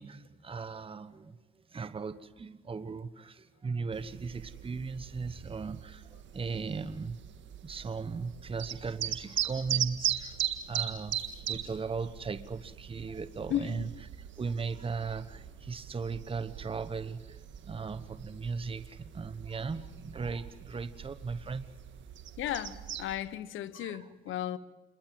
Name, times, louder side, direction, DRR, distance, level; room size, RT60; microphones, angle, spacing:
voice 1, 0.0-1.4 1.7-7.2 7.6-10.4 10.7-13.9 14.4-21.6 23.7-24.0, right 4 dB, 25° right, 1.1 m, -37 dB
sound 1, 3.9-23.2, right 10 dB, 70° right, 1.8 m, -40 dB
voice 2, 13.5-13.9 22.4-24.6, left 12 dB, 80° left, 1.2 m, -35 dB
27.5 x 23.0 x 7.7 m
cardioid pair, 90°, 20 cm